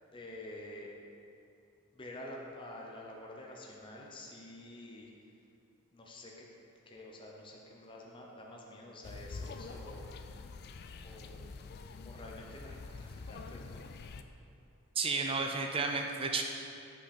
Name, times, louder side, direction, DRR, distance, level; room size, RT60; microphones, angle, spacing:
voice 1, 0.1-0.9 1.9-5.1 5.9-6.3 6.9-10.1 11.0-11.4 12.0-13.8, left 1 dB, 25° left, -2 dB, 0.7 m, -48 dB
sound 1, 9.0-14.2, left 4 dB, 45° left, 0.4 m, -46 dB
voice 2, 15.0-16.4, right 4 dB, 25° right, 3 dB, 0.4 m, -32 dB
8.1 x 5.7 x 4.2 m, 2.6 s
head